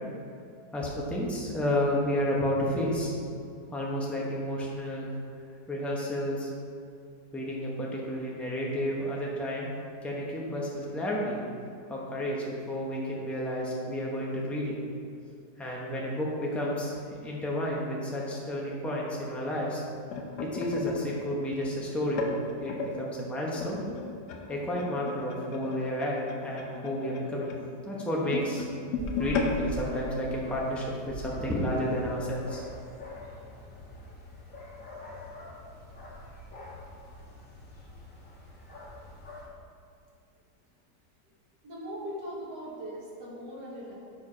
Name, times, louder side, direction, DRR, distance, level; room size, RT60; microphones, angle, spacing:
voice 1, 0.7-3.1 3.7-5.1 5.7-6.5 7.3-9.7 10.0-11.4 11.9-14.7 15.6-19.8 20.4-22.2 22.6-23.8 24.5-27.5 27.8-28.7 29.2-32.6, equal, ahead, -4 dB, 0.6 m, -31 dB
sound 1, 19.7-22.9 23.6-30.9 31.3-31.5 31.7-32.0 32.8-32.9, left 4 dB, 80° left, 1.3 m, -36 dB
sound 2, 29.0-39.5, equal, 50° left, 1.9 m, -43 dB
voice 2, 41.6-43.9, equal, 75° right, -5 dB, 2.1 m, -39 dB
6.7 x 4.7 x 4.9 m, 2.4 s
omnidirectional pair, 1.8 m